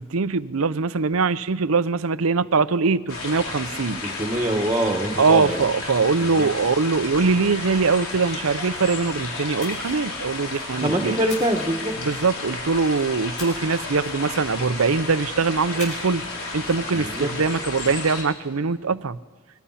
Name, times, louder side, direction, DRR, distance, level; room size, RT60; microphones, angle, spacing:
voice 1, 0.0-4.0 5.2-11.2 12.0-16.2 16.5-19.2, right 4 dB, 80° right, 15 dB, 0.7 m, -22 dB
sound 1, 3.1-18.2, left 3 dB, 75° left, 3.9 m, -33 dB
voice 2, 4.0-5.7 6.2-6.5 10.8-11.9 16.9-17.3, right 1 dB, 20° right, 3 dB, 1.5 m, -24 dB
Splash splatter, 9.6-10.8 11.3-12.5 13.4-14.6 15.8-16.3 16.5-16.8, left 4 dB, 35° left, 7.9 m, -41 dB
24.5 x 23.0 x 5.8 m, 1.3 s
head